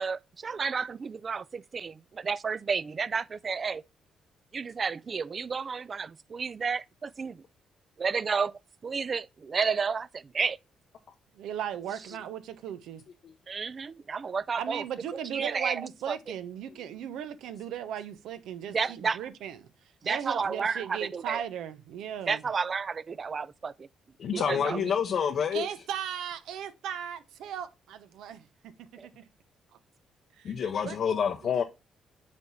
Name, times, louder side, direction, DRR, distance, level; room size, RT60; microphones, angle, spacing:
voice 1, 0.0-3.8 4.5-7.4 8.0-8.5 8.8-10.6 13.5-14.8 15.1-15.8 16.1-16.2 18.7-19.2 20.0-21.4 22.3-23.9 24.3-24.8 29.0-29.1, right 5 dB, 40° right, 0.4 m, -31 dB
voice 2, 11.4-13.0 14.5-19.7 20.0-22.5 24.3-24.9 25.5-29.2 30.4-31.0 31.4-31.6, right 9 dB, 85° right, 0.7 m, -37 dB
voice 3, 24.2-25.7 30.4-31.6, left 7 dB, 60° left, 0.6 m, -28 dB
8.3 x 3.5 x 4.0 m
cardioid pair, 90°, 0 cm